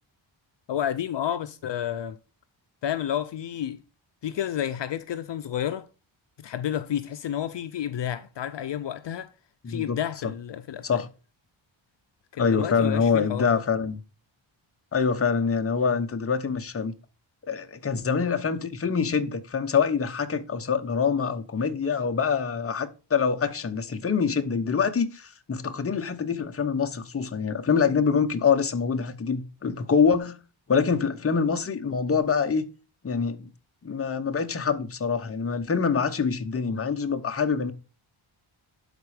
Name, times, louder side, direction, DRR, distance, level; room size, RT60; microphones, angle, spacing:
voice 1, 0.7-2.2 2.8-3.8 4.2-5.9 6.4-9.3 9.7-11.0 12.3-13.6, left 10 dB, 65° left, 0.6 m, -30 dB
voice 2, 9.6-10.0 10.8-11.1 12.4-14.0 14.9-16.9 17.5-30.4 30.7-32.6 33.0-33.5 33.8-37.7, left 6 dB, 30° left, 0.8 m, -25 dB
12.0 x 4.2 x 4.9 m
wide cardioid pair, 165°, 48 cm